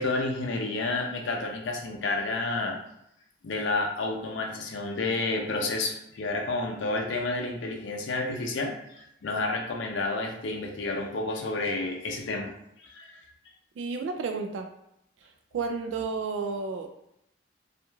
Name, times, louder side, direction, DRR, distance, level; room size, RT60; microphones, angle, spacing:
voice 1, 0.0-2.8 3.4-13.3, left 2 dB, 75° left, 2 dB, 0.5 m, -30 dB
voice 2, 13.8-14.7 15.5-16.9, right 4 dB, 80° right, 5 dB, 0.3 m, -31 dB
2.4 x 2.2 x 3.0 m, 0.79 s
head